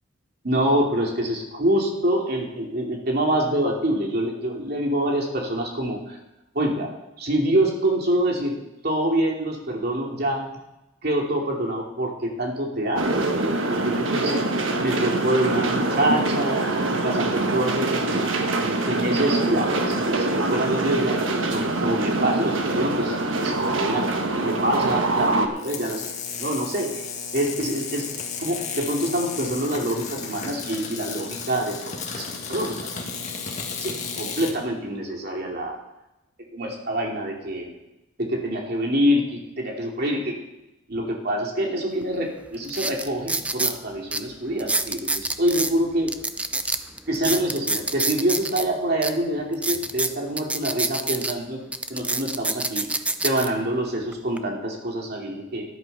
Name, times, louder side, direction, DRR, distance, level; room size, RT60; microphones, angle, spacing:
voice 1, 0.4-6.2 6.5-6.9 7.2-8.6 8.8-10.5 11.0-14.4 14.8-18.2 18.6-26.1 26.4-27.0 27.3-28.1 28.4-32.7 33.8-35.7 36.5-37.7 38.2-40.4 40.9-46.1 47.1-51.6 51.9-52.8 53.2-55.6, right 1 dB, 55° right, 0 dB, 2.6 m, -26 dB
sound 1, 13.0-25.5, right 2 dB, 85° right, 1.4 m, -24 dB
sound 2, 25.6-34.5, left 5 dB, 35° left, 1.7 m, -33 dB
sound 3, 42.0-42.1 42.6-43.8 44.1-44.2 44.6-45.7 46.1-48.6 49.0-49.1 49.5-51.3 51.7-53.5 54.1-54.4, right 2 dB, 5° right, 0.4 m, -26 dB
13.5 x 11.0 x 4.1 m, 0.94 s
head